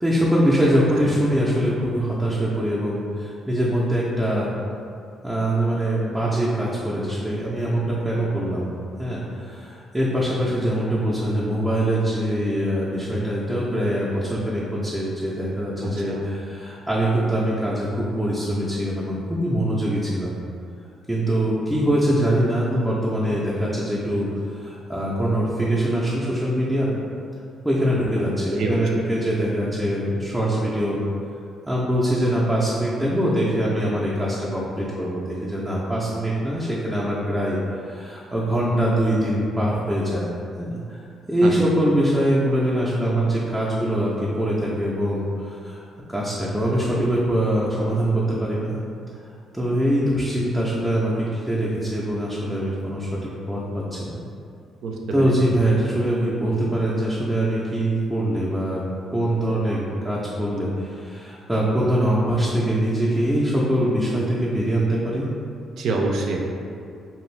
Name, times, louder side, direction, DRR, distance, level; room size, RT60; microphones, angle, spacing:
voice 1, 0.0-4.5 5.2-8.7 9.0-20.4 21.1-26.9 27.6-31.0 31.7-40.3 40.6-41.0 41.3-45.8 46.1-48.8 49.5-53.2 53.5-54.2 55.1-58.8 59.1-65.3, right 1 dB, 5° right, -7 dB, 0.4 m, -23 dB
voice 2, 54.8-55.3 65.8-66.4, right 3 dB, 70° right, 0 dB, 0.4 m, -25 dB
2.6 x 2.4 x 3.1 m, 2.5 s
cardioid pair, 90°, 0 cm